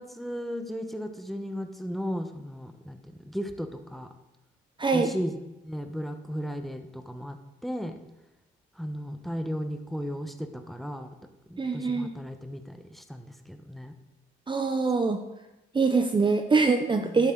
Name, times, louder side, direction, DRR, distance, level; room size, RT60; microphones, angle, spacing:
voice 1, 0.0-4.1 4.9-8.0 8.7-11.1 11.5-13.9 17.0-17.3, equal, ahead, 7 dB, 1.0 m, -35 dB
voice 2, 4.8-5.1 11.6-12.1 14.5-15.2 15.7-17.3, right 4 dB, 25° right, 6 dB, 0.7 m, -24 dB
11.0 x 8.9 x 3.9 m, 0.98 s
cardioid pair, 90°, 20 cm